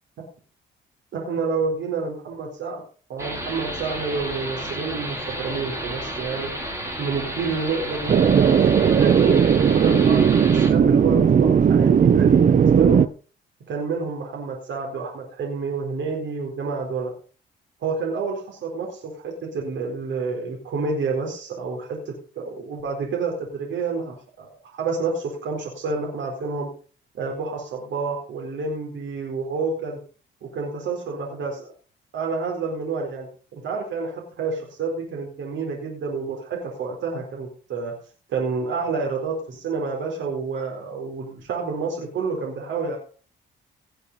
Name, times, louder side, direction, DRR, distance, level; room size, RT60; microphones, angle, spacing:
voice 1, 1.1-2.8 3.1-6.7 7.0-13.0 13.7-17.1 17.8-26.7 27.1-30.0 30.4-31.7 32.1-37.9 38.3-43.0, right 4 dB, 70° right, 0 dB, 4.2 m, -29 dB
sound 1, 3.2-10.7, right 1 dB, 15° right, 4.2 m, -32 dB
sound 2, 8.1-13.1, right 7 dB, 40° right, 0.7 m, -16 dB
18.0 x 6.8 x 5.3 m, 0.39 s
cardioid pair, 90°, 20 cm